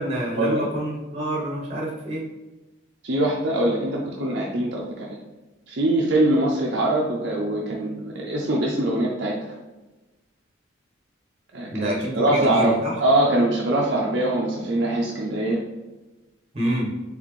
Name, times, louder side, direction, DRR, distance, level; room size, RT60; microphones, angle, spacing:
voice 1, 0.0-2.2 11.7-12.9 16.5-16.9, right 1 dB, 30° right, -3 dB, 1.0 m, -27 dB
voice 2, 3.0-5.2 5.7-9.5 11.5-12.7 13.0-15.6, right 1 dB, 55° right, -2 dB, 0.5 m, -23 dB
4.1 x 3.5 x 3.1 m, 1.1 s
head